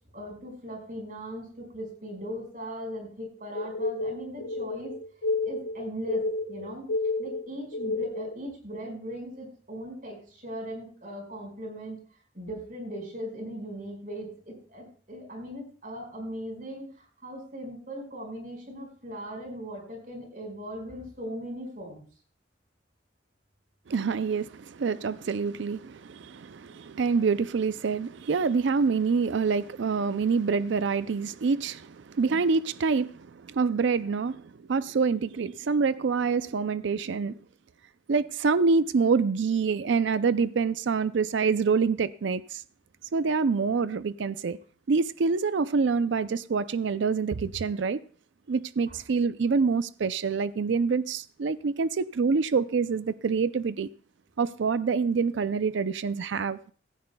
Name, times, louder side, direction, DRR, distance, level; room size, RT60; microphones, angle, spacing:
voice 1, 0.1-4.9 5.4-6.9 7.2-12.0 12.3-22.0 32.3-32.4 48.9-49.0, equal, 45° right, 5.1 m, -39 dB
sound 1, 3.5-8.4, left 3 dB, 80° left, 1.4 m, -31 dB
voice 2, 23.9-34.4 34.7-37.4 38.1-42.6 43.1-44.6 44.9-48.0 48.5-53.9 54.4-56.6, right 5 dB, 65° right, 0.4 m, -26 dB
16.5 x 15.0 x 2.2 m
head